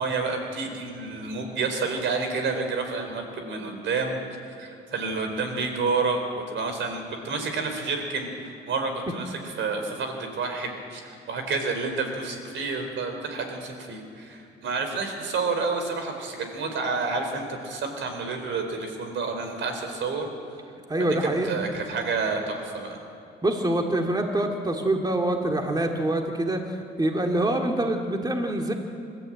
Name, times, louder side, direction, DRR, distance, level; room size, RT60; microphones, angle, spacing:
voice 1, 0.0-4.2 4.6-20.3 21.0-21.1 21.4-23.0, right 4 dB, 70° right, 5 dB, 4.2 m, -29 dB
voice 2, 20.9-21.5 23.4-28.7, right 1 dB, 20° right, 2 dB, 2.4 m, -25 dB
28.0 x 13.5 x 8.8 m, 2.7 s
cardioid pair, 90°, 20 cm